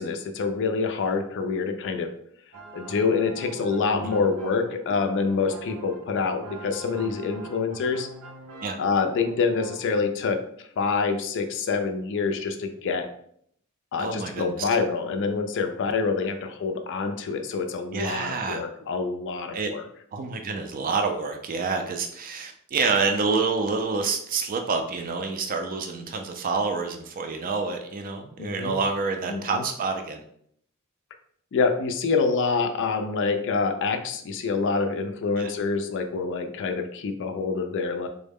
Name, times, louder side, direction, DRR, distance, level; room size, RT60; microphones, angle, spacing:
voice 1, 0.0-2.1 2.7-8.1 8.8-10.4 10.8-13.1 13.9-19.8 28.4-28.8 29.3-29.6 31.5-38.1, left 4 dB, 60° left, 6 dB, 0.4 m, -26 dB
sound 1, 2.5-9.8, right 3 dB, 90° right, 0.6 m, -44 dB
voice 2, 14.0-14.6 17.9-18.6 19.5-19.7 20.1-30.2 35.4-35.5, right 4 dB, 40° right, 5 dB, 0.4 m, -28 dB
3.7 x 2.1 x 3.4 m, 0.67 s
head